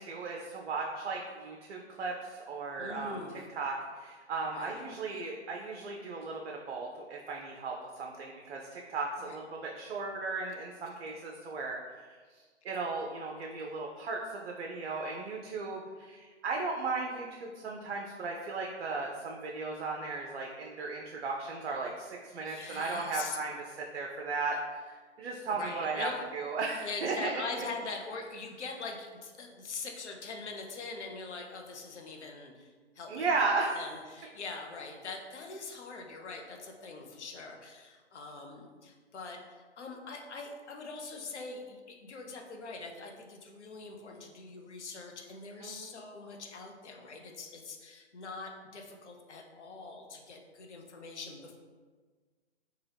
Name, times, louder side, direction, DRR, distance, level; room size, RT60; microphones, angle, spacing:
voice 1, 0.0-3.2 3.5-12.1 12.6-24.9 25.2-27.3 33.1-33.8 45.6-45.9, right 3 dB, 60° right, 0 dB, 0.5 m, -36 dB
voice 2, 2.8-3.4 4.4-4.8 9.2-9.4 22.4-23.4 25.5-26.3 26.8-33.5 33.7-51.6, left 3 dB, 70° left, 2 dB, 0.7 m, -43 dB
2.8 x 2.3 x 3.3 m, 1.5 s
figure-of-eight pair, 135°, 35 cm